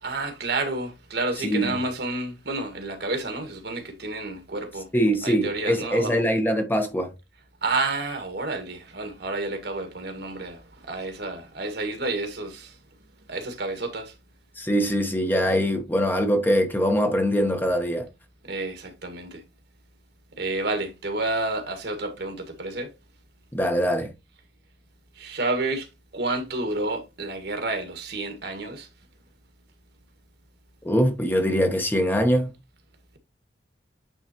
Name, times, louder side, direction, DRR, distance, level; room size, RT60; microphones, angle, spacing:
voice 1, 0.0-4.9 5.2-6.2 7.6-12.7 13.3-14.1 18.5-19.4 20.4-22.9 25.2-25.9 26.1-28.9, right 2 dB, 60° right, 1.6 m, -30 dB
voice 2, 4.9-7.1 14.6-18.1 23.5-24.1 30.8-32.5, equal, 10° left, 0.9 m, -23 dB
9.1 x 3.9 x 2.9 m
head